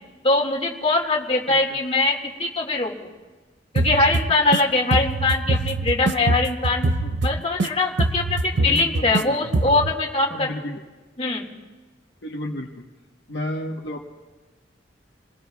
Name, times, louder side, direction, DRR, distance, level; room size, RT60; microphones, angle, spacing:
voice 1, 0.2-2.9 3.7-6.9 7.2-10.5 11.2-11.5, left 3 dB, 35° left, -1 dB, 2.1 m, -22 dB
sound 1, 3.8-4.6 4.9-7.7 8.0-9.2 9.5-9.9, right 2 dB, 70° right, 0.6 m, -23 dB
voice 2, 8.6-9.8 10.3-10.8 12.2-12.9 13.3-14.1, left 1 dB, 65° left, 0 dB, 1.2 m, -32 dB
28.5 x 20.5 x 2.4 m, 1.3 s
head